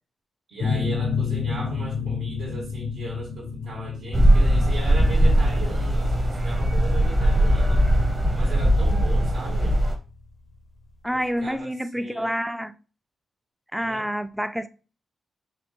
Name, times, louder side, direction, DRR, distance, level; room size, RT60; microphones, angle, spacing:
voice 1, 0.5-7.8 8.3-9.8 11.1-12.4 13.8-14.1, right 2 dB, 85° right, 1.7 m, -38 dB
sound 1, 0.6-10.0, left 5 dB, 55° left, 0.5 m, -31 dB
sound 2, 4.1-10.0, equal, 25° right, 0.8 m, -20 dB
voice 2, 11.0-12.7 13.7-14.7, equal, 5° right, 0.3 m, -28 dB
4.2 x 3.0 x 2.9 m
wide cardioid pair, 115°, 0 cm